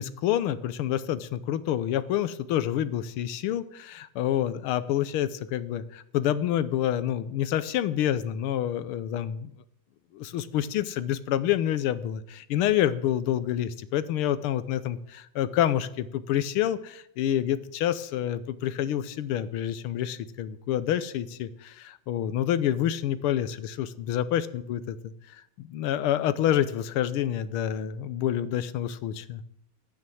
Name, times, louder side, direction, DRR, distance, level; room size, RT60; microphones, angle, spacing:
voice 1, 0.0-9.5 10.2-24.8 25.3-29.4, left 11 dB, 85° left, 14 dB, 1.7 m, -28 dB
10.5 x 9.1 x 7.7 m, 0.75 s
omnidirectional pair, 2.4 m